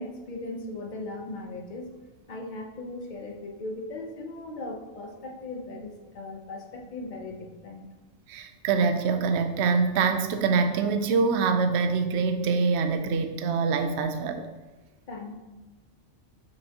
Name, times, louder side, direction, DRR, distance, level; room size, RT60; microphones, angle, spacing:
voice 1, 0.0-2.0 2.3-7.9 15.1-15.3, left 2 dB, 40° left, 2 dB, 0.8 m, -38 dB
voice 2, 8.3-14.4, right 5 dB, 65° right, 8 dB, 0.8 m, -25 dB
7.0 x 5.8 x 2.9 m, 1.2 s
omnidirectional pair, 1.4 m